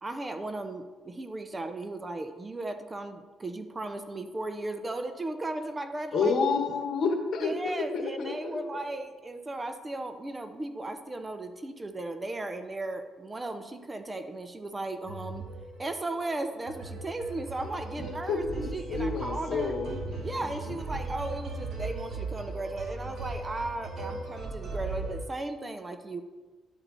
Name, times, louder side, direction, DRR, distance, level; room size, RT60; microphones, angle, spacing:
voice 1, 0.0-6.3 7.4-15.4 15.8-19.7 20.2-26.2, right 2 dB, 25° right, 8 dB, 0.7 m, -36 dB
voice 2, 6.1-8.8 18.0-20.8, left 4 dB, 70° left, 3 dB, 1.3 m, -30 dB
sound 1, 15.0-25.2, right 3 dB, 65° right, 2.1 m, -38 dB
11.5 x 4.3 x 4.1 m, 1.3 s
cardioid pair, 90°, 0 cm